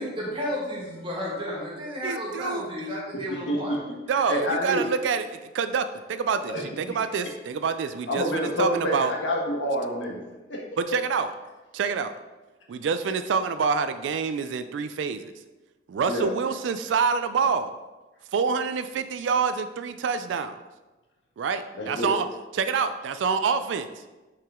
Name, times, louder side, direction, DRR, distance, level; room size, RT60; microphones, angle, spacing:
voice 1, 0.0-3.8, equal, 30° right, -5 dB, 2.0 m, -32 dB
voice 2, 2.0-2.7 4.1-9.1 10.8-11.3 11.7-12.1 12.7-15.3 15.9-17.7 18.3-20.6 21.4-22.2 22.5-23.9, right 5 dB, 75° right, 10 dB, 0.3 m, -27 dB
voice 3, 3.1-3.8 4.3-4.8 6.5-6.6 8.1-10.2 10.5-10.6 16.1-16.3 21.8-22.1, equal, 80° left, -2 dB, 1.3 m, -27 dB
5.8 x 4.9 x 3.6 m, 1.2 s
head